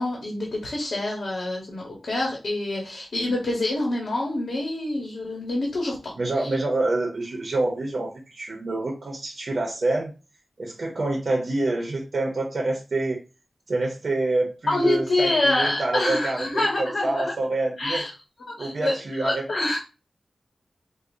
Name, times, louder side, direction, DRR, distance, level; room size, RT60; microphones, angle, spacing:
voice 1, 0.0-6.0 6.4-6.5 14.7-17.3 17.8-18.1 18.6-19.8, left 2 dB, 85° left, -2 dB, 1.0 m, -26 dB
voice 2, 6.2-10.1 10.6-13.2 13.7-18.1 18.6-19.4, right 2 dB, 65° right, 0 dB, 0.6 m, -27 dB
4.7 x 2.0 x 2.6 m, 0.32 s
wide cardioid pair, 105°, 0 cm